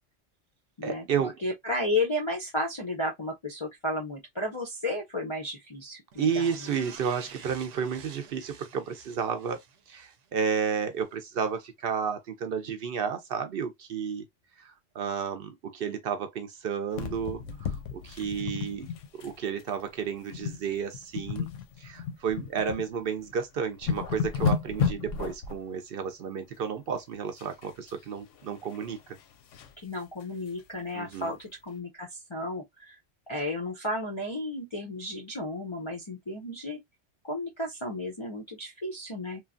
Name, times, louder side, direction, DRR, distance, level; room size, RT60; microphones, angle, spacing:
voice 1, 0.8-1.4 6.2-9.6 9.9-14.3 14.6-21.5 21.8-29.2 30.9-31.3, right 7 dB, 60° right, 0.6 m, -32 dB
voice 2, 1.4-6.7 29.8-33.0 33.3-36.8 37.3-39.4, left 1 dB, 45° left, 0.4 m, -33 dB
sound 1, 6.1-10.7 11.0-11.1, right 7 dB, 85° right, 0.9 m, -50 dB
sound 2, 16.9-19.3 19.6-19.8 20.3-20.6 20.9-22.8 23.3-23.4 23.7-25.6 27.4-27.9 28.3-29.7 30.2-30.3 30.6-30.7 31.1-31.2, left 7 dB, 90° left, 0.9 m, -32 dB
3.1 x 2.3 x 2.4 m
omnidirectional pair, 1.2 m